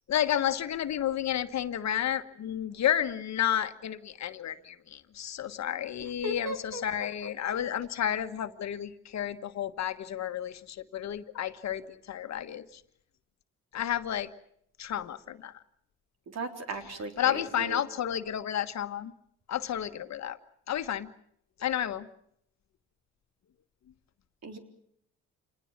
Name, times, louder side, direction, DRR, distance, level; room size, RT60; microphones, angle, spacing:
voice 1, 0.1-12.8 13.7-14.3 14.8-15.5 17.2-19.1 19.5-20.4 20.7-21.1 21.6-22.1, left 10 dB, 65° left, 9 dB, 1.4 m, -31 dB
voice 2, 6.2-6.8 16.3-17.8 24.4-24.6, right 1 dB, 60° right, 4 dB, 3.9 m, -36 dB
27.0 x 20.0 x 7.4 m, 0.71 s
cardioid pair, 90°, 30 cm